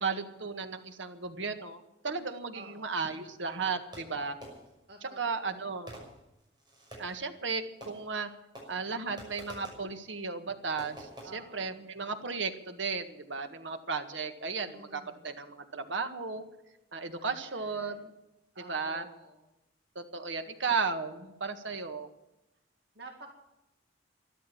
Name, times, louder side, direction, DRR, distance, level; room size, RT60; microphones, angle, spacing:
voice 1, 0.0-4.4 5.2-6.0 7.0-8.3 8.7-16.4 16.9-18.1 18.7-19.1 20.0-22.1, right 4 dB, 90° right, 7 dB, 1.7 m, -35 dB
voice 2, 2.5-3.0 4.9-5.7 11.2-11.8 14.7-15.3 17.2-18.0 18.5-19.5 22.9-23.3, right 2 dB, 65° right, 3 dB, 2.1 m, -51 dB
Fireworks, 3.9-4.9 5.9-7.2 7.8-8.3 8.6-9.9 10.8-11.3, right 1 dB, 25° right, 6.1 m, -48 dB
13.5 x 12.0 x 8.7 m, 0.91 s
head